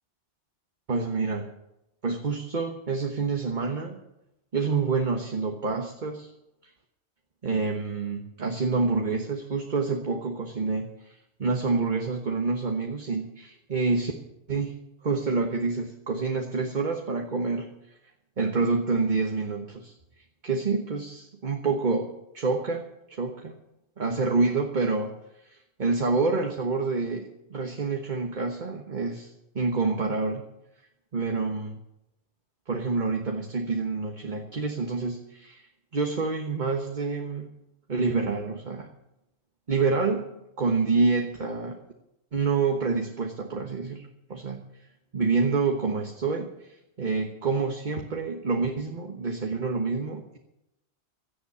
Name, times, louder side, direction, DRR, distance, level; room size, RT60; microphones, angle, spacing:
voice 1, 0.9-1.5 2.0-4.0 4.5-6.3 7.4-14.1 14.5-14.8 15.0-17.7 18.4-19.9 20.4-22.8 23.1-23.5 24.0-25.1 25.5-29.3 29.5-30.4 31.1-31.8 32.7-35.7 35.9-37.5 37.9-38.9 39.7-40.3 40.6-41.8 42.3-44.6 45.1-50.4, right 4 dB, 45° right, 3 dB, 1.4 m, -27 dB
16.5 x 11.5 x 6.9 m, 0.87 s
omnidirectional pair, 1.2 m